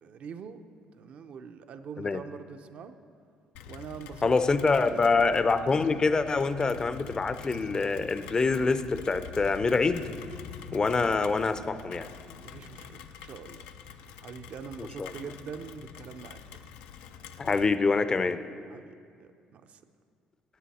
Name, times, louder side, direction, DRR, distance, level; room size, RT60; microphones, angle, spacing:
voice 1, 0.0-0.6 0.9-3.0 3.7-4.3 4.6-5.1 12.4-13.7 14.2-16.7 18.7-19.8, right 6 dB, 60° right, 8 dB, 0.6 m, -44 dB
Rain, 3.5-17.7, left 7 dB, 90° left, 0.5 m, -46 dB
voice 2, 4.2-10.1 10.7-12.1 14.8-15.1 17.4-18.4, left 4 dB, 30° left, 12 dB, 0.5 m, -25 dB
14.0 x 9.1 x 4.2 m, 2.3 s
supercardioid pair, 85°, 3 cm